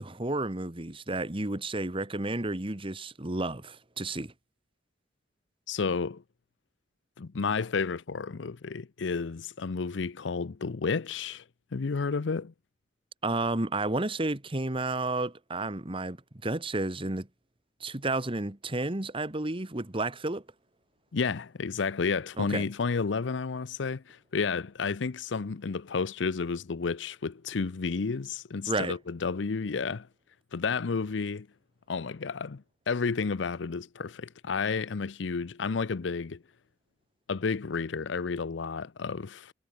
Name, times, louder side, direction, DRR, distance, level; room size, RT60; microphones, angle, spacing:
voice 1, 0.0-4.3 13.2-17.3 17.8-20.4 22.4-22.7 28.7-29.0, right 2 dB, 30° right, 1.5 m, -31 dB
voice 2, 5.7-6.2 7.2-11.4 11.7-12.5 21.1-30.1 30.5-31.5 31.9-36.4 37.3-39.5, left 5 dB, 75° left, 0.6 m, -31 dB
head